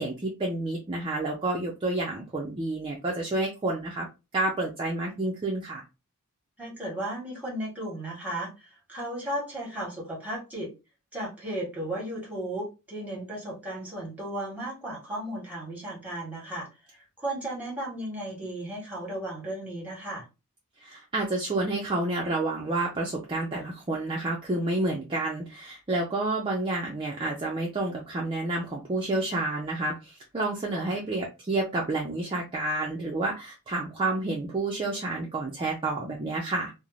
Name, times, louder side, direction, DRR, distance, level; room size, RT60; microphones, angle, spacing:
voice 1, 0.0-4.1 4.3-5.8 20.8-36.7, right 2 dB, 25° right, 0.4 m, -29 dB
voice 2, 6.6-10.7 11.1-16.7 17.2-20.2 30.7-30.9, right 1 dB, 5° right, 1.1 m, -35 dB
2.5 x 2.0 x 3.0 m
head